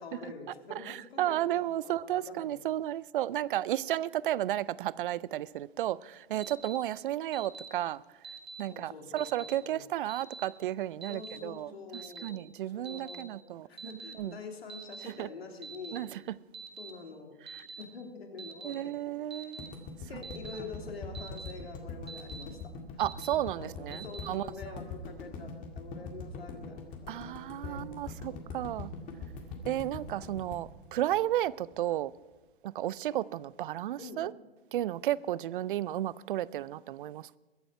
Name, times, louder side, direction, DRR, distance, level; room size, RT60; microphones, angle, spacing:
voice 1, 0.0-2.6 8.7-9.9 11.1-12.4 12.6-13.3 13.6-16.0 16.8-17.4 17.8-19.2 20.1-23.0 23.6-28.4 34.0-34.2, left 4 dB, 80° left, 3.1 m, -46 dB
voice 2, 0.7-8.0 8.6-13.7 14.2-14.4 15.0-15.3 15.9-16.2 17.5-17.7 18.6-19.7 23.0-24.7 27.1-28.9 29.7-32.1 32.6-34.3 34.7-37.4, right 13 dB, 60° right, 0.5 m, -33 dB
Alarm, 6.4-6.8 7.3-7.7 8.2-8.6 9.2-9.5 10.1-10.4 11.0-11.4 11.9-12.3 12.9-13.2 13.8-14.1 14.7-15.1 15.6-16.0 16.5-16.9 17.5-17.8 18.4-18.7 19.3-19.7 20.2-20.6 21.1-21.5 22.1-22.4 23.0-23.4 23.9-24.3, right 4 dB, 90° right, 2.6 m, -44 dB
sound 1, 19.6-31.8, left 4 dB, 25° left, 2.1 m, -42 dB
22.0 x 9.1 x 4.8 m
hypercardioid pair, 125°, 30 cm